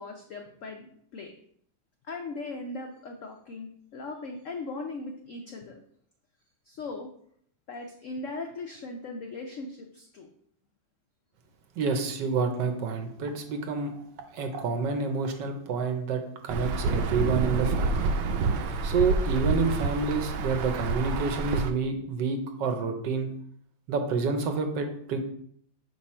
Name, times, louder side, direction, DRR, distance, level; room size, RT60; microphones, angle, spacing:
voice 1, 0.0-1.3 2.1-5.7 6.7-7.1 7.7-10.3, left 3 dB, 85° left, 3 dB, 0.6 m, -39 dB
voice 2, 11.8-14.0 14.3-18.1 18.8-23.3 23.9-25.2, right 4 dB, 70° right, 5 dB, 1.4 m, -28 dB
Insect / Thunder / Rain, 16.5-21.7, right 3 dB, 85° right, 1.4 m, -28 dB
6.2 x 3.6 x 4.2 m, 0.65 s
omnidirectional pair, 2.1 m